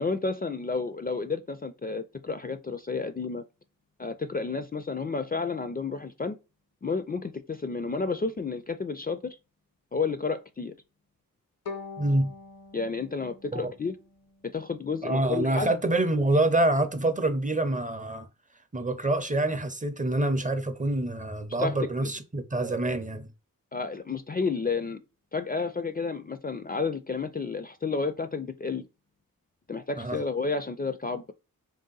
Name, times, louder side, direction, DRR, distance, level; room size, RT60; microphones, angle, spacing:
voice 1, 0.0-3.4 4.0-6.4 6.8-9.4 9.9-10.7 12.7-13.9 14.4-15.7 21.6-22.1 23.7-25.0 25.3-28.9 29.7-31.3, left 4 dB, 25° left, 0.4 m, -31 dB
Bowed string instrument, 11.6-14.7, left 4 dB, 80° left, 0.9 m, -44 dB
voice 2, 12.0-12.3 13.5-13.7 15.0-18.3 18.7-23.3 30.0-30.2, right 2 dB, 25° right, 0.5 m, -26 dB
3.3 x 2.7 x 3.8 m
cardioid pair, 50°, 34 cm